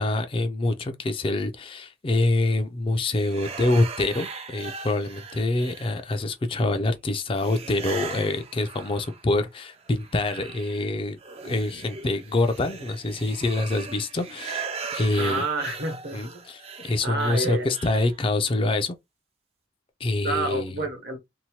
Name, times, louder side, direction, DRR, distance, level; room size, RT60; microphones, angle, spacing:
voice 1, 0.0-11.2 11.4-15.5 16.1-19.0 20.0-20.7, left 2 dB, 30° left, 0.4 m, -26 dB
sound 1, 3.1-6.3 7.4-9.4 9.7-18.2, right 5 dB, 35° right, 0.4 m, -39 dB
voice 2, 15.2-16.4 17.0-17.7 20.2-21.2, right 2 dB, 60° right, 1.0 m, -29 dB
2.7 x 2.1 x 2.9 m
head